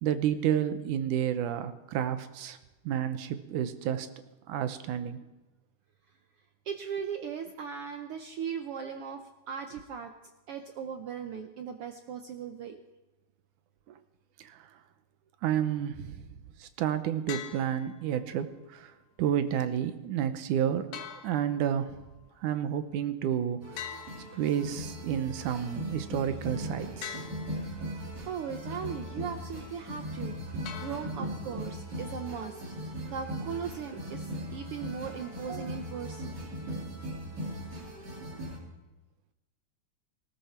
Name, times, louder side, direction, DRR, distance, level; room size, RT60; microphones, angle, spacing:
voice 1, 0.0-2.6 2.9-4.1 4.5-5.2 14.4-14.7 15.4-16.3 16.6-18.9 19.2-22.0 22.4-23.6 24.3-27.2 31.2-31.3, right 9 dB, 90° right, 10 dB, 2.4 m, -30 dB
voice 2, 6.6-10.1 10.5-12.8 13.9-14.0 28.3-32.6 33.1-36.4, right 7 dB, 70° right, 6 dB, 1.4 m, -38 dB
sound 1, 17.3-18.3 20.9-22.0 23.8-25.0 27.0-28.0 30.7-31.6, left 9 dB, 85° left, 2.7 m, -44 dB
sound 2, 23.6-38.6, equal, 35° right, 3.1 m, -39 dB
19.0 x 17.0 x 4.4 m, 1.1 s
omnidirectional pair, 3.5 m